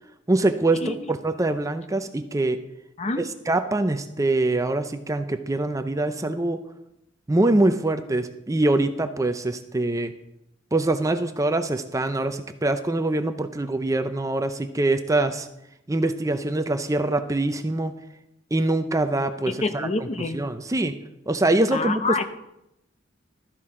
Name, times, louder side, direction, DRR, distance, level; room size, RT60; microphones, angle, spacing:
voice 1, 0.3-2.6 3.2-6.6 7.3-10.1 10.7-15.5 15.9-17.9 18.5-19.9 20.2-20.9 21.3-22.0, right 2 dB, 15° right, 9 dB, 0.6 m, -24 dB
voice 2, 19.5-20.4 21.7-22.2, left 3 dB, 35° left, 9 dB, 0.7 m, -27 dB
13.5 x 10.0 x 3.7 m, 0.84 s
head